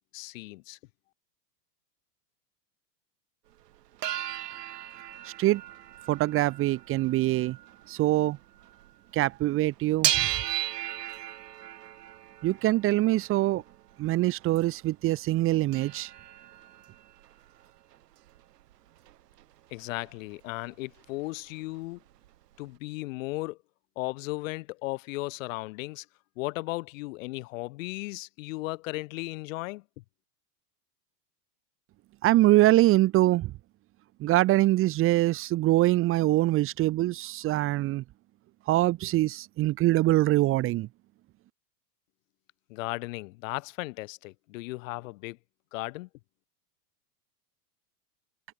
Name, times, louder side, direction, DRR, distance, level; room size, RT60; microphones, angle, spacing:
voice 1, 0.1-0.8 19.7-22.0 22.6-23.6 24.0-26.1 26.4-29.8 42.7-45.4 45.7-46.1, left 21 dB, 55° left, 4.2 m, -36 dB
sound 1, 3.7-8.9 9.2-14.8 15.2-15.3 15.5-19.4 19.7-20.7 21.0-21.1 21.3-22.3 22.7-22.8, right 13 dB, 85° right, 5.5 m, -36 dB
voice 2, 5.2-5.6 6.1-7.6 7.9-8.4 9.1-10.1 12.4-13.6 14.0-16.1 32.2-33.5 34.2-38.0 38.7-40.9, right 16 dB, 25° right, 1.5 m, -24 dB
supercardioid pair, 160°, 47 cm